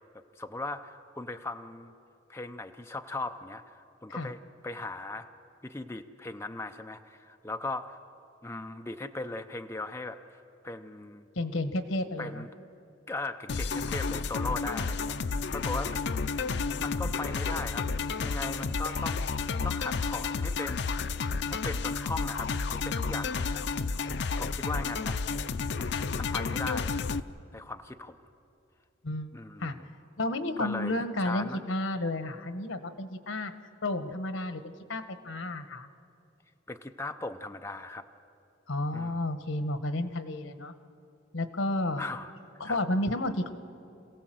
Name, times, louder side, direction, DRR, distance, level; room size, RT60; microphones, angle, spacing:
voice 1, 0.4-1.9 2.3-4.4 4.6-5.3 5.6-8.0 8.4-10.2 10.6-11.3 12.2-12.5 13.1-16.1 16.8-17.8 18.2-19.3 19.6-20.8 21.5-23.6 24.4-25.3 25.8-25.9 26.2-27.0 27.5-28.2 29.3-29.8 30.6-31.6 36.7-38.0 38.9-39.2 42.0-42.3 42.6-42.8, left 2 dB, 15° left, 5 dB, 0.6 m, -38 dB
voice 2, 11.3-12.4 17.0-17.1 29.0-29.3 29.6-29.7 30.2-33.5 33.8-35.9 38.7-40.7 41.3-42.0 42.6-43.5, left 1 dB, 85° left, 10 dB, 1.2 m, -32 dB
sound 1, 13.5-27.2, left 4 dB, 60° left, 0.5 m, -31 dB
27.0 x 16.5 x 7.7 m, 2.6 s
head